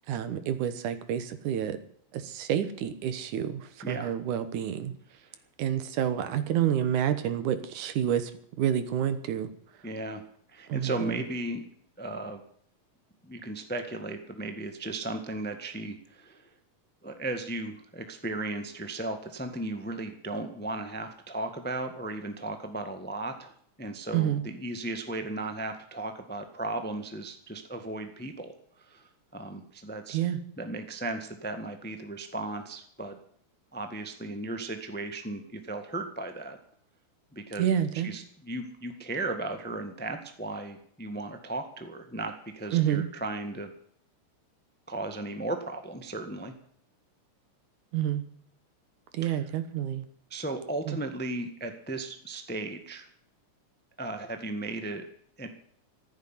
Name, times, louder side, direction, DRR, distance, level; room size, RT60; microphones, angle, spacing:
voice 1, 0.1-1.8 2.1-4.9 5.6-8.3 8.6-9.5 10.7-11.2 24.1-24.4 30.1-30.4 37.6-38.1 42.7-43.1 47.9-48.3 49.1-50.1 50.9-51.0, right 10 dB, 75° right, 11 dB, 2.7 m, -28 dB
voice 2, 9.8-10.2 10.5-11.7 12.0-12.4 13.2-16.5 17.0-23.5 23.8-30.2 30.6-33.2 33.7-36.6 37.3-37.7 37.9-43.7 44.9-46.5 50.3-53.1 54.0-55.0 55.4-55.5, right 2 dB, 15° left, 7 dB, 0.4 m, -36 dB
15.0 x 8.2 x 9.9 m, 0.64 s
omnidirectional pair, 3.6 m